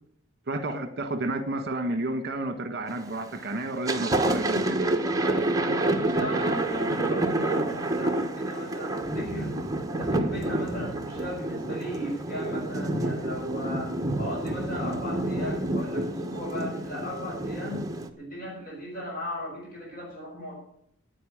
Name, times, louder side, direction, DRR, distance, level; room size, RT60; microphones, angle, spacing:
voice 1, 0.5-5.0, right 2 dB, 55° right, 10 dB, 1.4 m, -31 dB
Thunder, 2.9-3.3 3.7-18.1, right 1 dB, 20° right, 1.2 m, -28 dB
voice 2, 5.2-9.6 10.0-17.8 18.1-20.5, equal, 45° left, -4 dB, 6.2 m, -37 dB
10.0 x 9.2 x 10.0 m, 0.68 s
head